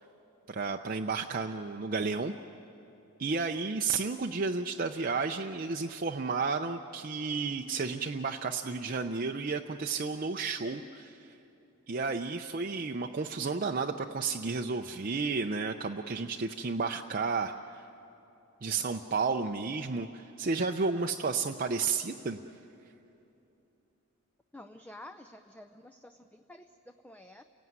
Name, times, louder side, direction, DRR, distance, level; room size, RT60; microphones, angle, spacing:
voice 1, 0.5-2.3 3.2-11.3 11.9-17.8 18.6-22.4, right 4 dB, 40° right, 4 dB, 0.6 m, -32 dB
voice 2, 24.5-27.4, left 1 dB, 5° left, 7 dB, 0.5 m, -50 dB
29.5 x 17.0 x 9.5 m, 2.9 s
head